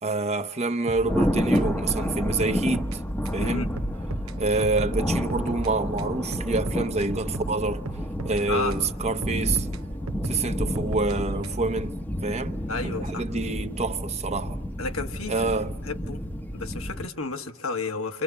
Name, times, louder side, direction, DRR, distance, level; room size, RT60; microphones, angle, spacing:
voice 1, 0.0-3.0 3.3-3.7 4.4-7.8 8.2-9.7 10.2-14.6 15.3-15.7, right 3 dB, 30° right, 0.9 m, -27 dB
sound 1, 0.9-3.0 3.2-3.4 3.8-5.7 6.0-8.9 9.2-11.8, right 2 dB, 90° right, 0.8 m, -38 dB
Thunder, 1.0-17.0, equal, 10° left, 0.9 m, -30 dB
voice 2, 3.4-3.7 8.5-8.8 12.7-13.2 14.8-15.5 15.8-16.2 16.5-18.2, left 3 dB, 75° left, 1.4 m, -31 dB
29.5 x 25.5 x 7.1 m
head